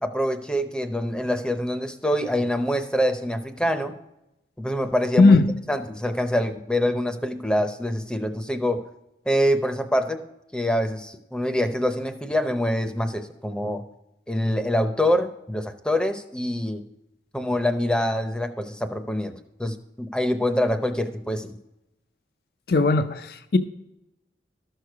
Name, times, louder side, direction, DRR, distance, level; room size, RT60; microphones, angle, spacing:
voice 1, 0.0-3.9 4.6-5.4 5.7-8.8 9.3-10.2 10.5-13.8 14.3-16.8 17.3-19.3 19.6-21.5, equal, 5° left, 0.7 m, -25 dB
voice 2, 5.2-5.5 22.7-23.6, left 3 dB, 55° left, 0.5 m, -17 dB
13.0 x 6.6 x 4.6 m
head